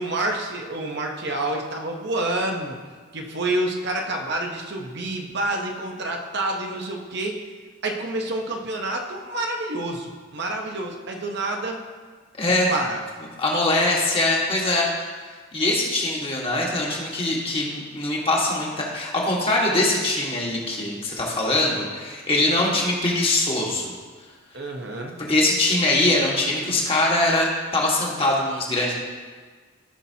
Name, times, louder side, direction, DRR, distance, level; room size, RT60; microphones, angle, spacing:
voice 1, 0.0-2.8 3.1-7.4 7.8-11.8 12.7-13.0 24.5-25.2, right 2 dB, 55° right, 1 dB, 0.9 m, -28 dB
voice 2, 12.4-12.7 13.4-14.9 15.5-24.0 25.2-27.5 27.7-28.9, left 2 dB, 25° left, -3 dB, 1.5 m, -22 dB
14.5 x 5.9 x 2.8 m, 1.5 s
head